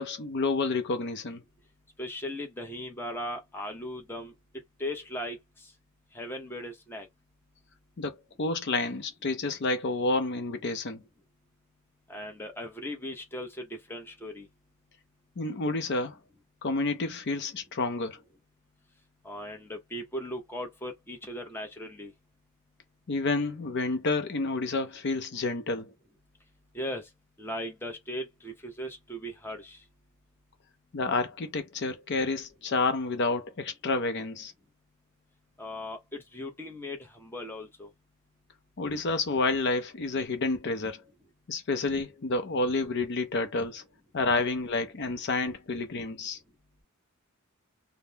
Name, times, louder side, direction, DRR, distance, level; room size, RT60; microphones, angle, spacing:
voice 1, 0.0-1.4 8.0-11.0 15.4-16.2 16.6-18.2 23.1-25.9 30.9-34.5 38.8-41.0 41.5-43.8 44.1-46.4, left 3 dB, 50° left, 0.6 m, -29 dB
voice 2, 2.0-4.3 4.8-5.4 6.1-7.1 12.1-14.5 19.2-22.1 26.7-27.1 27.4-29.8 35.6-37.9, left 1 dB, 10° left, 0.7 m, -38 dB
3.6 x 2.1 x 2.7 m
head